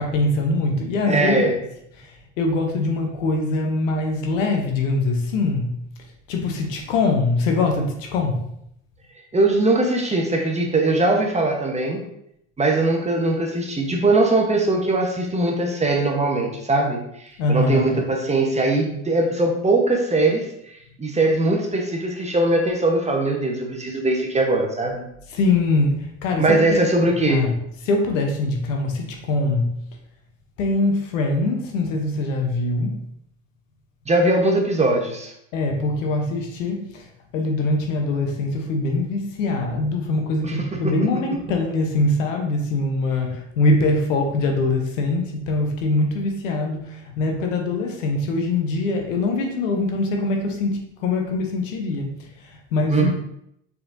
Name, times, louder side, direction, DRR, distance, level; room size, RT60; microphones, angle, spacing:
voice 1, 0.0-1.4 2.0-5.7 6.3-8.4 17.4-18.0 25.3-26.8 27.2-27.5 27.8-29.7 30.6-33.0 35.5-37.1 37.3-53.1, left 2 dB, 80° left, 2 dB, 0.9 m, -23 dB
voice 2, 1.1-1.5 9.3-12.0 12.6-20.4 21.0-25.0 26.4-27.4 34.1-35.3 40.4-40.9 52.9-53.1, right 2 dB, 15° right, 1 dB, 1.0 m, -21 dB
4.3 x 4.1 x 2.6 m, 0.75 s
hypercardioid pair, 70°, 38 cm